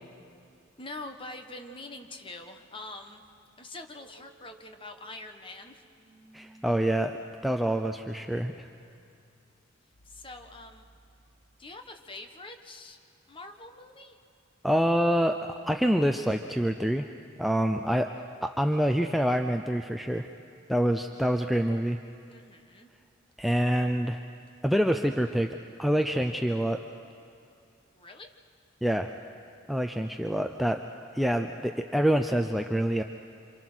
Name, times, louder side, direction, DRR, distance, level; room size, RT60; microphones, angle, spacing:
voice 1, 0.8-3.2 3.6-5.8 10.0-10.8 11.6-13.0 13.3-14.2 22.3-22.9 28.0-28.3, left 2 dB, 25° left, 5 dB, 1.3 m, -44 dB
sound 1, 3.9-11.8, right 1 dB, 50° left, 6.9 m, -58 dB
voice 2, 6.3-7.1 7.4-8.7 14.6-15.4 15.6-17.1 17.4-18.1 18.4-20.3 20.7-22.0 23.4-24.2 24.6-25.5 25.8-26.8 28.8-29.1 29.7-30.8 31.1-33.0, equal, ahead, 4 dB, 0.5 m, -26 dB
27.0 x 26.5 x 6.2 m, 2.5 s
head